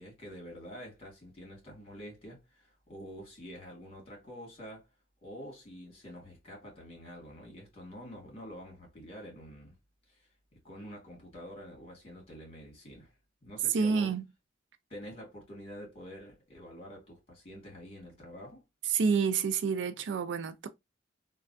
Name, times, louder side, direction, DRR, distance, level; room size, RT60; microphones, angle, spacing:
voice 1, 0.0-4.9 5.2-9.8 10.1-10.2 10.6-13.1 13.4-14.1 14.9-18.6, equal, 35° left, 1.7 m, -47 dB
voice 2, 13.7-14.2 18.9-20.7, right 5 dB, 70° right, 0.4 m, -28 dB
3.1 x 2.3 x 2.5 m
head